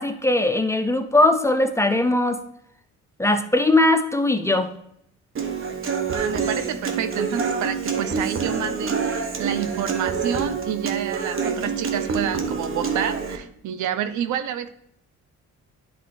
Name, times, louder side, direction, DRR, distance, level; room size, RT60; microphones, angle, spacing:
voice 1, 0.0-2.4 3.2-4.7, left 2 dB, 10° left, 7 dB, 0.6 m, -20 dB
Human voice / Acoustic guitar, 5.4-13.4, right 5 dB, 45° right, 1.1 m, -27 dB
voice 2, 6.1-14.7, right 9 dB, 75° right, 11 dB, 0.7 m, -29 dB
10.5 x 3.7 x 3.9 m, 0.73 s
cardioid pair, 90°, 30 cm